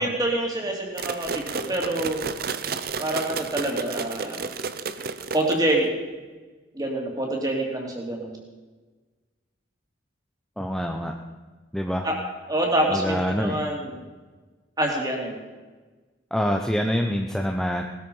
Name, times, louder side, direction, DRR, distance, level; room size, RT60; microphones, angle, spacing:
voice 1, 0.0-2.2 3.0-4.4 5.3-5.9 6.7-8.4 12.0-12.2 12.5-14.0 14.8-15.4, right 1 dB, 20° right, 0 dB, 3.0 m, -26 dB
sound 1, 1.0-5.9, right 5 dB, 50° right, 0.8 m, -32 dB
voice 2, 10.6-11.1 11.7-12.1 12.9-13.6 16.3-17.8, equal, ahead, 2 dB, 0.8 m, -25 dB
18.5 x 13.0 x 5.5 m, 1.3 s
head